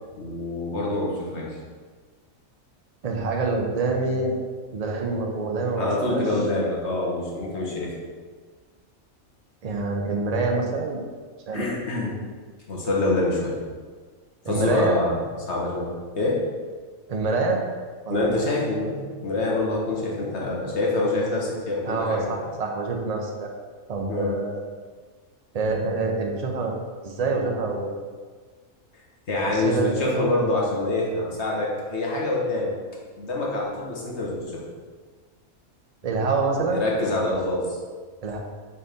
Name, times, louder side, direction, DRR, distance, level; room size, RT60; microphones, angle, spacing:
voice 1, 0.1-1.6 5.7-7.9 11.5-12.2 12.7-13.6 14.5-16.4 18.1-22.3 24.1-24.3 28.9-32.7 33.2-34.6 36.6-37.8, left 2 dB, 55° left, -3 dB, 1.4 m, -26 dB
voice 2, 3.0-4.3 4.7-6.2 9.6-11.0 11.5-11.7 14.4-15.0 17.1-17.6 18.0-18.5 21.9-23.5 23.9-24.6 25.5-26.8 27.0-27.9 29.5-30.5 36.0-36.8 38.2-38.4, right 3 dB, 35° right, 1 dB, 0.6 m, -26 dB
4.6 x 4.1 x 5.1 m, 1.5 s
omnidirectional pair, 1.5 m